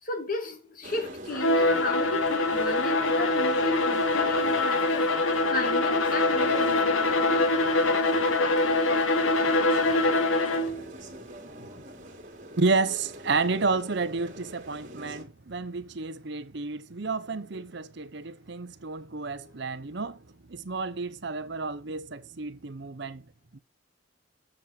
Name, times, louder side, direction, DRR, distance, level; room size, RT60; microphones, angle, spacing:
voice 1, 0.0-5.1 5.5-7.4 11.6-11.8, left 2 dB, 40° left, 1.9 m, -34 dB
sound 1, 0.8-15.3, right 1 dB, 40° right, 2.3 m, -43 dB
Bowed string instrument, 1.3-10.8, left 2 dB, 80° left, 1.4 m, -24 dB
voice 2, 12.6-23.2 23.5-23.6, right 3 dB, 55° right, 0.8 m, -31 dB
7.4 x 7.1 x 5.1 m
head